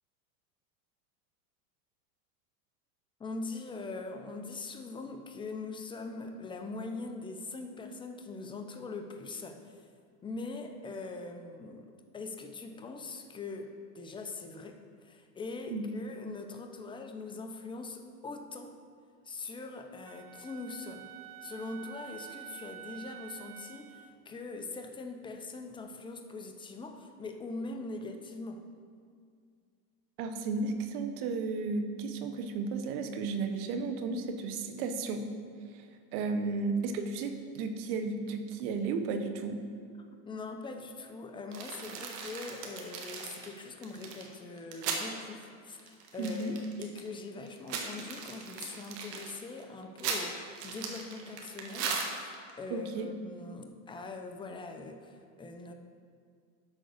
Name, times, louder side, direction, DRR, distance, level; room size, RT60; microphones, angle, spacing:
voice 1, 3.2-9.8 10.2-18.7 19.2-21.1 21.4-28.7 40.3-55.7, left 3 dB, 10° left, 5 dB, 0.6 m, -42 dB
Wind instrument woodwind instrument, 20.0-24.1, right 13 dB, 45° right, 0.7 m, -48 dB
voice 2, 30.2-35.3 36.1-39.6 46.2-46.5 52.7-53.1, right 4 dB, 65° right, 7 dB, 1.1 m, -33 dB
sound 1, 41.5-45.1 45.4-45.5 45.8-47.1 47.5-52.5, right 5 dB, 85° right, 1.6 m, -38 dB
11.5 x 3.8 x 6.5 m, 2.1 s
supercardioid pair, 125°, 47 cm